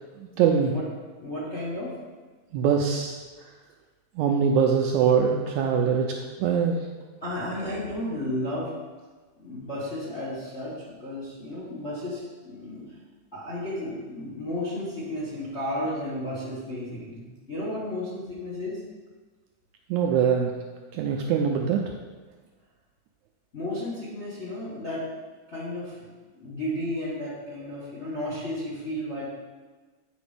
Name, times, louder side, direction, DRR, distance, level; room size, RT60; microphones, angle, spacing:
voice 1, 0.4-0.7 2.5-3.2 4.2-6.1 6.4-6.8 19.9-20.5 20.9-21.8, right 7 dB, 85° right, 2 dB, 1.7 m, -22 dB
voice 2, 1.2-1.9 7.2-8.7 9.4-12.8 13.3-18.8 23.5-25.1 25.5-26.0 26.3-29.3, left 1 dB, 40° left, -7 dB, 1.0 m, -33 dB
8.4 x 5.1 x 5.1 m, 1.4 s
omnidirectional pair, 3.8 m